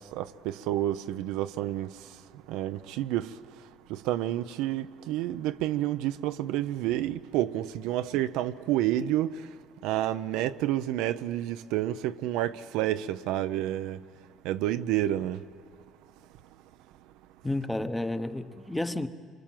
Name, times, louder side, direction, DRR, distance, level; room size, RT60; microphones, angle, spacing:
voice 1, 0.1-1.9 2.5-3.3 3.9-9.4 9.8-14.0 14.4-15.4, right 13 dB, 80° right, 0.6 m, -29 dB
voice 2, 17.4-19.1, left 1 dB, 10° left, 1.0 m, -31 dB
27.5 x 24.5 x 7.6 m
cardioid pair, 100°, 0 cm